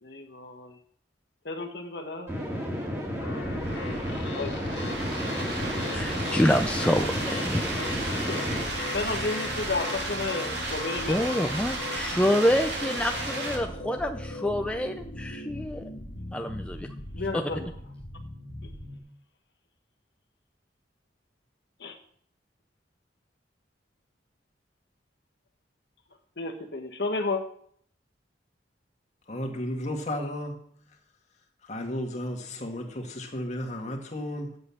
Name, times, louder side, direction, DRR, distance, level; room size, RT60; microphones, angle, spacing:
voice 1, 0.0-0.8 1.4-2.3 4.3-4.9 7.9-11.4 17.1-17.7 18.6-18.7 21.8-22.0 26.4-27.4, left 3 dB, 65° left, 5 dB, 1.3 m, -33 dB
sound 1, 2.3-8.6, equal, 15° right, 2.6 m, -32 dB
sound 2, 3.2-19.0, left 2 dB, 80° left, 1.7 m, -38 dB
sound 3, 3.6-13.6, right 2 dB, 70° right, 2.8 m, -34 dB
voice 2, 5.9-7.8 11.1-15.9 16.3-16.9 17.3-17.4, equal, 5° left, 5 dB, 0.5 m, -27 dB
voice 3, 29.3-30.6 31.6-34.6, left 1 dB, 40° left, 2 dB, 1.9 m, -33 dB
7.9 x 7.9 x 7.1 m, 0.63 s
head